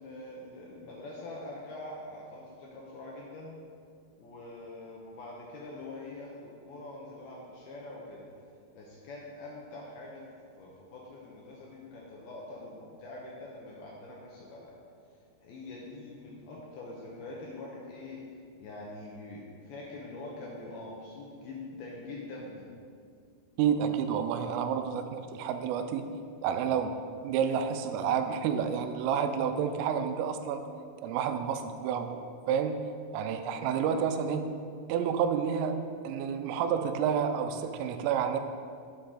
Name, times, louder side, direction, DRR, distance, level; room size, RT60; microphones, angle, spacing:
voice 1, 0.0-3.6 4.2-8.2 8.7-10.2 10.5-14.7 15.4-18.2 18.6-22.7 33.9-34.0, left 2 dB, 75° left, -3 dB, 2.3 m, -44 dB
voice 2, 23.6-26.0 26.4-26.9 27.2-30.6 31.0-32.8 33.1-34.4 34.9-35.8 36.0-38.4, right 7 dB, 85° right, 8 dB, 3.3 m, -29 dB
10.5 x 7.8 x 5.1 m, 2.3 s
omnidirectional pair, 5.8 m